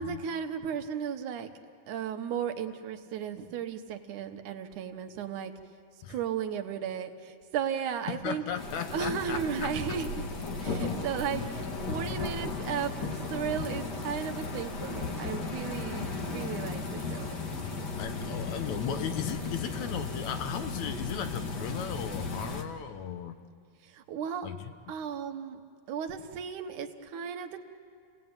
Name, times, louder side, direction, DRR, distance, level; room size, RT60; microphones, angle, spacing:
voice 1, 0.0-1.5 1.9-5.5 6.1-8.4 8.9-10.1 10.6-17.4 23.8-24.5 24.9-25.6 25.9-27.6, right 8 dB, 75° right, 7 dB, 2.5 m, -35 dB
voice 2, 8.1-9.7 18.0-23.4 24.4-25.0, left 8 dB, 70° left, 9 dB, 2.1 m, -36 dB
sound 1, 8.6-22.6, left 3 dB, 40° left, 1.8 m, -35 dB
29.5 x 18.5 x 8.8 m, 2.2 s
omnidirectional pair, 3.6 m